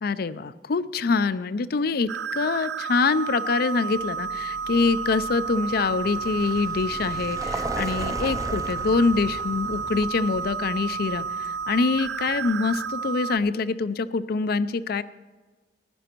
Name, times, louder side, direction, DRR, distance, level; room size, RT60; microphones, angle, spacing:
voice 1, 0.0-15.0, left 4 dB, 55° left, 15 dB, 0.5 m, -25 dB
sound 1, 2.1-13.4, right 5 dB, 75° right, 0.5 m, -31 dB
Vehicle, 4.0-12.8, right 2 dB, 20° right, 0.5 m, -37 dB
15.5 x 11.0 x 4.5 m, 1.3 s
head